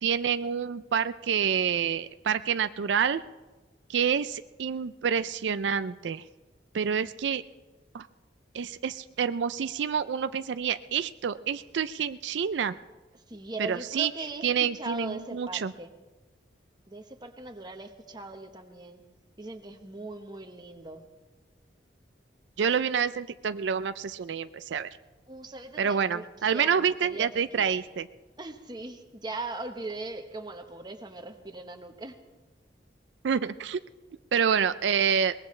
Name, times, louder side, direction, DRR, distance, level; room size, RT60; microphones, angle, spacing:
voice 1, 0.0-3.2 3.9-6.2 6.7-7.4 7.9-8.1 8.5-12.7 13.6-14.1 14.4-15.7 22.6-24.9 25.8-28.1 33.2-33.8 34.3-35.3, right 7 dB, 80° right, 12 dB, 0.4 m, -28 dB
voice 2, 13.3-15.9 16.9-19.0 19.4-21.0 25.3-27.8 28.4-32.2, right 2 dB, 25° right, 5 dB, 1.2 m, -40 dB
22.5 x 19.5 x 3.3 m, 1.2 s
head